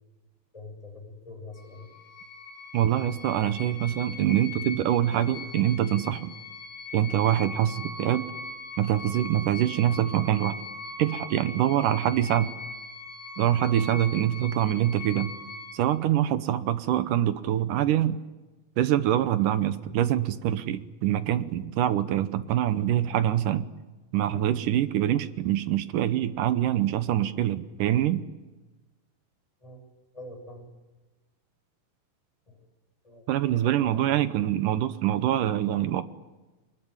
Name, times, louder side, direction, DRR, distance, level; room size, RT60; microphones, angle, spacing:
voice 1, 0.5-1.9 29.6-29.8 30.1-30.7 32.5-32.7 33.0-34.0, left 2 dB, 10° left, 2 dB, 7.0 m, -45 dB
sound 1, 1.6-15.7, left 2 dB, 35° left, 7.4 m, -40 dB
voice 2, 2.7-6.3 6.9-8.3 8.8-10.6 11.0-12.5 13.4-15.3 15.7-18.2 18.8-23.7 24.1-28.2 33.3-36.0, right 11 dB, 75° right, 12 dB, 2.0 m, -25 dB
24.5 x 21.5 x 9.7 m, 1.2 s
omnidirectional pair, 4.8 m